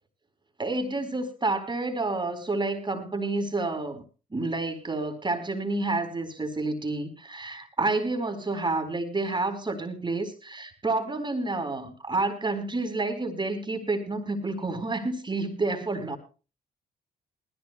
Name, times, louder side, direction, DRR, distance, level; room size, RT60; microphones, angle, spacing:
voice 1, 0.6-4.0 4.3-16.2, right 2 dB, 25° right, 6 dB, 4.1 m, -29 dB
20.5 x 15.0 x 2.3 m, 0.34 s
hypercardioid pair, 50°, 19 cm